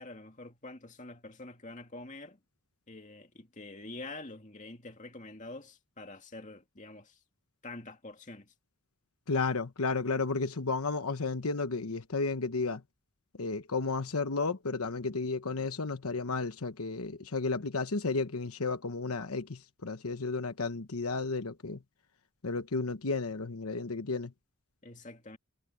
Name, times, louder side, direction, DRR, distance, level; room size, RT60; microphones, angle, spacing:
voice 1, 0.0-2.4 2.9-7.2 7.6-8.5 24.8-25.4, left 2 dB, 35° left, 2.3 m, -46 dB
voice 2, 9.3-12.8 13.4-21.8 22.4-24.3, left 3 dB, 85° left, 1.1 m, -33 dB
head